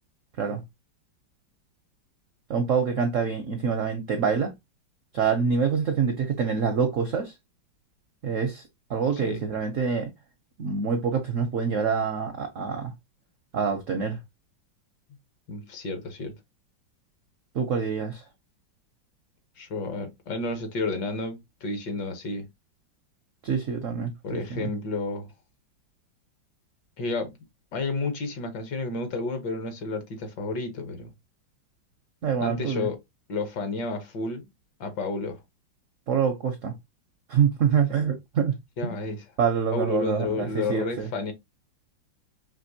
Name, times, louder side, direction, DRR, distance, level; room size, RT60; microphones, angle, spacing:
voice 1, 2.5-4.5 5.1-7.3 8.2-10.1 10.6-12.9 13.5-14.2 17.5-18.2 23.4-24.7 32.2-32.9 36.1-36.7 37.3-38.5 38.8-38.9 39.4-41.1, right 6 dB, 70° right, 0.7 m, -26 dB
voice 2, 15.5-16.3 19.6-22.5 24.2-25.3 27.0-27.4 27.7-31.1 32.4-33.0 33.3-34.4 34.8-35.4 38.8-39.3 39.7-41.3, left 3 dB, 65° left, 1.6 m, -31 dB
5.2 x 3.1 x 2.6 m
omnidirectional pair, 2.1 m